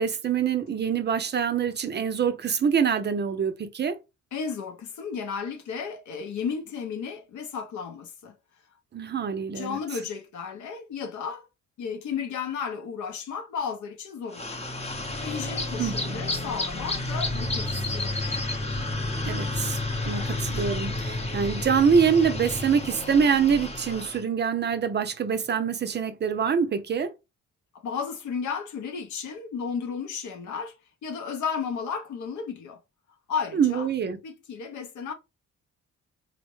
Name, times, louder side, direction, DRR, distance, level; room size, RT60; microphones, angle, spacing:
voice 1, 0.0-4.0 8.9-9.8 15.8-16.2 19.2-19.8 20.0-27.1 33.5-34.2, right 6 dB, 35° right, 0.5 m, -25 dB
voice 2, 4.3-8.3 9.5-11.5 11.8-14.8 15.2-18.1 27.8-30.7 31.0-32.8 33.3-33.9 34.2-35.1, left 6 dB, 70° left, 0.8 m, -33 dB
sound 1, 14.3-24.2, left 2 dB, 20° left, 0.8 m, -30 dB
4.1 x 2.1 x 3.0 m
cardioid pair, 90°, 30 cm